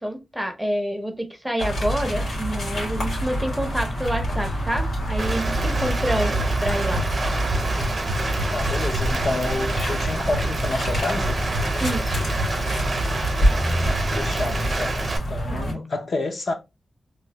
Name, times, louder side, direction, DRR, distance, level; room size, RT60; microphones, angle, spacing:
voice 1, 0.0-7.0 11.8-12.3 15.5-15.8, equal, 5° right, 0.6 m, -28 dB
sound 1, 1.6-15.7, right 1 dB, 75° left, 1.6 m, -26 dB
sound 2, 4.1-12.5, equal, 85° right, 0.4 m, -30 dB
Rain, 5.2-15.2, right 3 dB, 40° right, 0.8 m, -29 dB
voice 2, 8.5-11.3 13.8-15.0 15.3-16.5, left 2 dB, 55° left, 0.6 m, -29 dB
3.1 x 2.3 x 2.8 m
wide cardioid pair, 130°, 0 cm